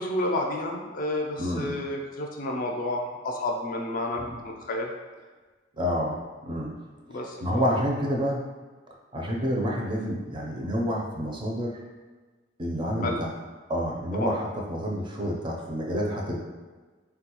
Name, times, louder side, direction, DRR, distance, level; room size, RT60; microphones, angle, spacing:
voice 1, 0.0-4.9 7.1-7.7 13.0-13.2 14.1-14.3, left 1 dB, 45° left, 1 dB, 0.4 m, -30 dB
voice 2, 1.4-1.7 4.2-4.4 5.8-6.8 7.1-8.4 9.1-11.8 12.6-13.3 13.7-16.4, equal, 25° right, -2 dB, 0.4 m, -29 dB
3.9 x 2.2 x 2.9 m, 1.3 s
head